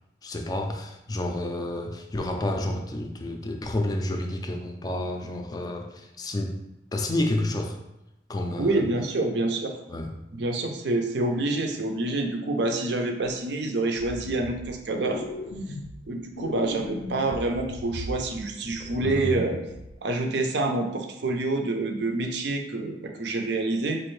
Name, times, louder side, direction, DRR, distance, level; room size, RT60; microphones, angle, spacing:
voice 1, 0.2-6.6 6.9-7.8 8.3-8.9 9.9-10.1 18.8-19.5, left 1 dB, 20° left, 3 dB, 0.3 m, -30 dB
voice 2, 8.6-9.8 10.3-15.2 16.1-19.6 20.0-24.0, right 2 dB, 70° right, 3 dB, 0.5 m, -27 dB
sound 1, 14.0-14.7 15.0-16.0 16.3-18.4 18.6-19.3 19.7-19.9, left 2 dB, 85° left, 0.4 m, -38 dB
4.3 x 2.5 x 3.1 m, 0.90 s
head